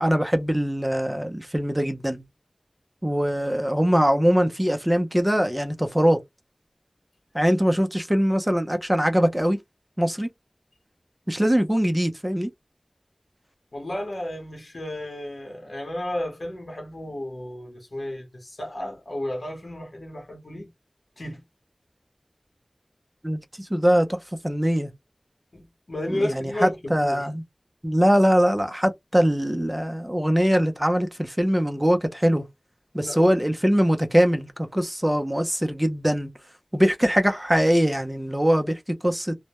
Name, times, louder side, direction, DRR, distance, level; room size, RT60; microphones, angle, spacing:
voice 1, 0.0-2.2 3.0-6.2 7.3-9.6 10.0-10.3 11.3-12.5 23.2-24.2 24.4-24.9 26.1-27.4 27.8-32.4 32.9-36.3 36.7-39.3, equal, 15° right, 0.5 m, -22 dB
voice 2, 13.7-20.7 21.2-21.4 25.5-27.3 32.9-33.3, left 1 dB, 70° left, 0.9 m, -33 dB
2.1 x 2.1 x 2.8 m
wide cardioid pair, 50°, 0 cm